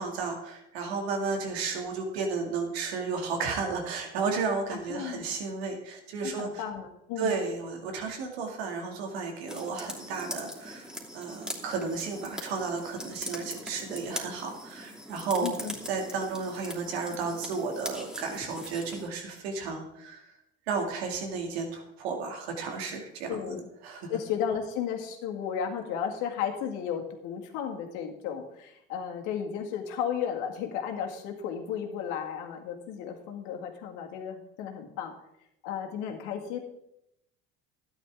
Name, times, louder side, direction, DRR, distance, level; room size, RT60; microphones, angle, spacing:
voice 1, 0.0-6.6 7.2-10.9 11.1-15.5 15.9-20.3 20.7-23.6 23.8-24.1, right 4 dB, 90° right, 3 dB, 2.3 m, -33 dB
voice 2, 4.7-5.3 6.2-7.3 15.4-15.7 23.3-23.7 24.1-35.1 35.6-36.6, left 8 dB, 75° left, 3 dB, 2.0 m, -34 dB
sound 1, 9.5-19.1, equal, ahead, 2.9 m, -41 dB
12.5 x 10.0 x 3.6 m, 0.81 s
supercardioid pair, 75°, 31 cm